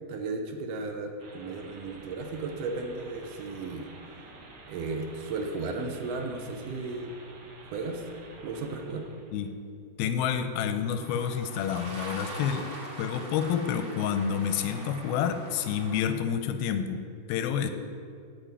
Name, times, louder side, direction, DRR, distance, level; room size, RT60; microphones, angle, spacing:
voice 1, 0.1-3.9 4.7-7.2 7.7-8.1 8.4-9.0, right 3 dB, 80° right, 3 dB, 1.4 m, -35 dB
sound 1, 1.2-9.5, right 2 dB, 55° right, 1.8 m, -50 dB
voice 2, 10.0-12.7 13.0-17.7, left 8 dB, 90° left, 8 dB, 2.6 m, -29 dB
sound 2, 11.0-16.0, right 2 dB, 35° right, 2.5 m, -42 dB
14.5 x 4.9 x 9.1 m, 2.3 s
omnidirectional pair, 4.3 m